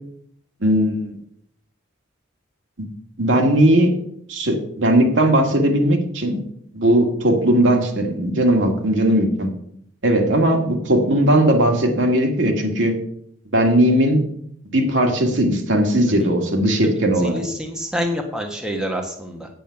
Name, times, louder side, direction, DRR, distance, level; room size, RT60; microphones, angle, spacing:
voice 1, 0.6-1.2 2.8-2.9 3.2-3.9 4.3-6.4 6.7-9.5 10.0-12.9 13.5-14.2 14.7-17.4, right 1 dB, 65° right, 2 dB, 1.9 m, -18 dB
voice 2, 17.3-19.5, equal, 5° right, 2 dB, 1.2 m, -27 dB
8.9 x 8.1 x 5.7 m, 0.69 s
head